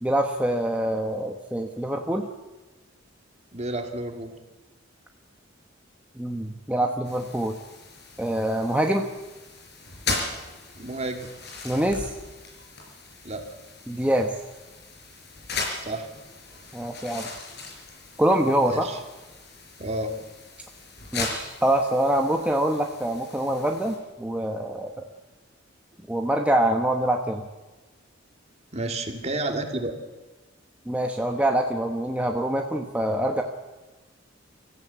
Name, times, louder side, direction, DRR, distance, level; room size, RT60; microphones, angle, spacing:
voice 1, 0.0-2.3 6.2-7.6 8.2-9.1 11.6-12.1 13.9-14.3 16.7-17.3 18.2-18.9 21.1-25.0 26.1-27.5 30.9-33.4, right 1 dB, 5° right, 2 dB, 1.1 m, -25 dB
voice 2, 3.5-4.3 10.8-11.3 13.2-13.4 15.8-16.1 18.7-19.0 19.8-20.1 28.7-29.9, right 2 dB, 35° right, 5 dB, 2.4 m, -30 dB
sound 1, 7.0-24.0, left 3 dB, 60° left, 4.8 m, -38 dB
24.0 x 14.5 x 8.3 m, 1.2 s
head